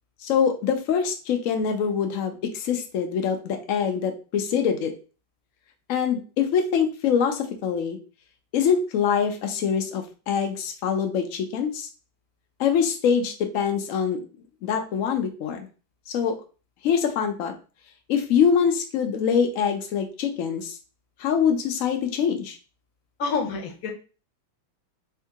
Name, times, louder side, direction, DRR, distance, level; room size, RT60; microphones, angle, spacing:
voice 1, 0.2-4.9 5.9-8.0 8.5-11.9 12.6-14.2 14.6-15.7 16.1-16.4 16.8-17.5 18.1-20.8 21.2-22.6, left 7 dB, 90° left, 4 dB, 0.7 m, -24 dB
voice 2, 23.2-23.9, left 4 dB, 60° left, 4 dB, 1.0 m, -27 dB
3.5 x 2.8 x 3.5 m, 0.35 s
omnidirectional pair, 2.1 m